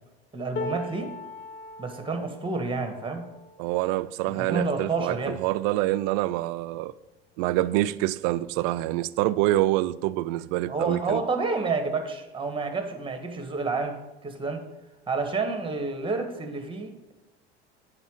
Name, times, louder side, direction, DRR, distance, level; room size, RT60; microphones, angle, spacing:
voice 1, 0.3-1.2 1.8-3.3 4.3-5.4 10.7-14.6 15.1-17.1, right 4 dB, 15° right, 1.6 m, -29 dB
sound 1, 0.6-6.7 7.3-7.5 7.8-8.5 9.5-9.6, left 2 dB, 35° left, 0.9 m, -41 dB
voice 2, 3.6-6.9 7.4-11.2, right 16 dB, 60° right, 0.5 m, -26 dB
7.8 x 5.8 x 6.3 m
hypercardioid pair, 70°, 31 cm